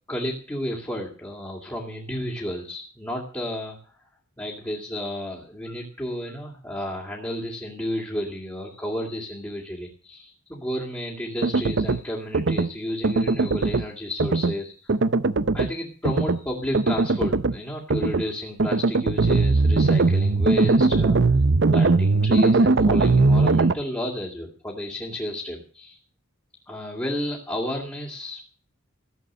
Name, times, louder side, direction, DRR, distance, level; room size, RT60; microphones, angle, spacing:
voice 1, 0.1-3.9 4.4-14.9 15.5-21.2 21.7-26.0 26.7-28.5, equal, 10° left, -2 dB, 2.6 m, -32 dB
sound 1, 11.4-12.0 12.3-12.7 13.0-13.9 14.2-14.5 14.9-15.7 16.0-16.4 16.7-17.6 17.9-18.2 18.6-23.7, right 3 dB, 55° right, 0.7 m, -20 dB
16.0 x 8.2 x 7.5 m, 0.40 s
head